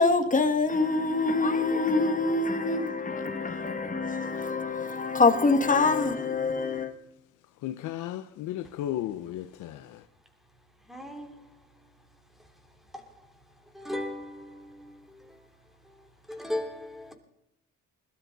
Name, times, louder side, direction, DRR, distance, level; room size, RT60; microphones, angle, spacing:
voice 1, 0.0-6.9, left 3 dB, 25° left, 2.0 m, -25 dB
voice 2, 7.6-9.8, left 12 dB, 90° left, 0.8 m, -34 dB
voice 3, 10.9-11.3 13.8-14.6 16.3-17.1, left 1 dB, ahead, 3.3 m, -35 dB
21.0 x 12.5 x 4.0 m
cardioid pair, 90°, 30 cm